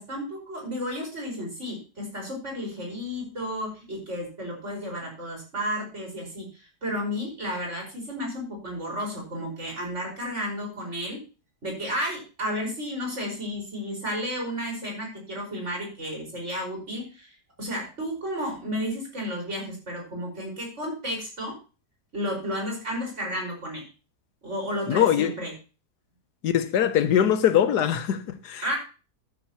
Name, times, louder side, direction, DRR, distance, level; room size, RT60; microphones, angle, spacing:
voice 1, 0.0-11.2 11.6-21.6 22.1-23.8 24.4-25.5 28.6-28.8, equal, 45° right, 5.4 m, -32 dB
voice 2, 24.9-25.3 26.4-28.7, left 9 dB, 85° left, 1.5 m, -22 dB
13.0 x 10.5 x 3.0 m
omnidirectional pair, 1.7 m